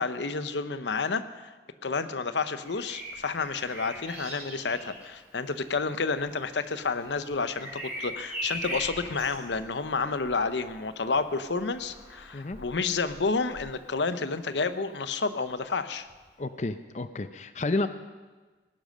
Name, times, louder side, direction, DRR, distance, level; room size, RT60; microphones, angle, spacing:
voice 1, 0.0-1.5 1.8-16.1, left 4 dB, 85° left, 12 dB, 0.8 m, -30 dB
Bird vocalization bird call bird song, 2.6-14.4 16.1-16.3, equal, 10° right, 5.4 m, -41 dB
voice 2, 16.4-17.9, left 2 dB, 40° left, 11 dB, 0.5 m, -30 dB
18.5 x 10.5 x 6.5 m, 1.3 s
head